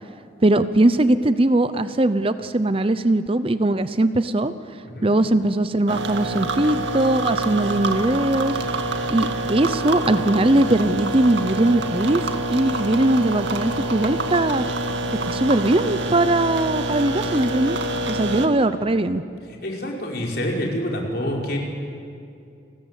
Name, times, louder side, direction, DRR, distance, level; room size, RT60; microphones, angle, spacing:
voice 1, 0.4-4.5 5.0-8.6 9.1-14.7 15.2-17.8 18.1-19.2, right 1 dB, 30° right, 12 dB, 0.7 m, -20 dB
sound 1, 5.9-18.5, right 2 dB, 80° right, 2.0 m, -26 dB
voice 2, 19.6-21.6, equal, 55° left, -1 dB, 5.1 m, -27 dB
30.0 x 20.5 x 8.4 m, 2.5 s
head